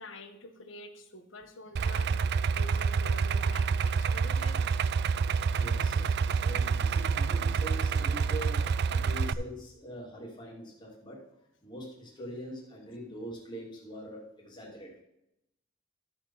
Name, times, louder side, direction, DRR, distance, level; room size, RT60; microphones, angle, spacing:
voice 1, 0.0-4.8 14.5-14.6, left 2 dB, 65° left, 8 dB, 1.2 m, -48 dB
Idling, 1.8-9.3, right 5 dB, 55° right, 0.4 m, -28 dB
voice 2, 5.5-11.2 11.6-14.9, equal, 20° left, -3 dB, 2.5 m, -43 dB
13.0 x 4.5 x 5.5 m, 0.81 s
head